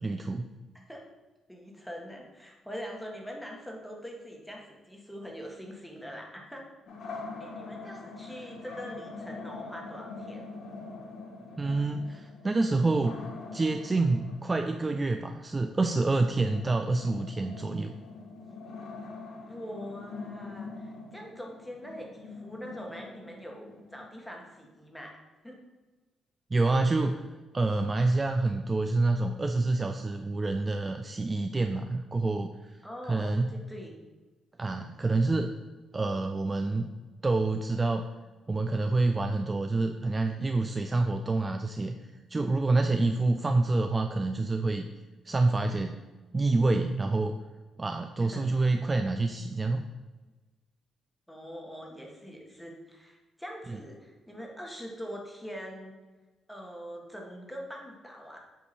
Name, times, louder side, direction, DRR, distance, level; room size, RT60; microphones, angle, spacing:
voice 1, 0.0-0.5 11.6-13.3 13.5-17.9 26.5-27.3 27.5-32.8 33.1-33.5 34.6-35.5 35.9-36.9 37.2-38.1 38.5-42.0 42.3-44.9 45.2-46.0 46.3-47.3 47.8-49.9, right 3 dB, 25° right, 5 dB, 0.3 m, -27 dB
voice 2, 1.5-6.7 7.4-10.4 19.4-25.2 25.4-25.6 32.8-34.0 48.2-48.5 51.3-56.0 56.5-58.4, equal, 5° left, 0 dB, 1.3 m, -43 dB
sound 1, 6.9-24.6, left 3 dB, 65° left, 1.0 m, -44 dB
8.0 x 2.7 x 4.2 m, 1.2 s
cardioid pair, 90°, 0 cm